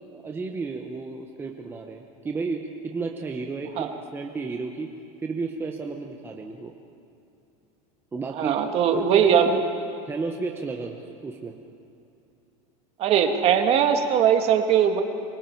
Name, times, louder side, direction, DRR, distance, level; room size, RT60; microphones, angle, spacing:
voice 1, 0.1-4.9 5.2-6.7 8.1-8.7 8.9-9.6 10.1-11.0 11.2-11.5, right 4 dB, 15° right, 2 dB, 1.0 m, -32 dB
voice 2, 8.3-9.5 13.0-15.0, right 8 dB, 40° right, 5 dB, 1.8 m, -20 dB
26.5 x 25.0 x 4.7 m, 2.7 s
supercardioid pair, 150°, 17 cm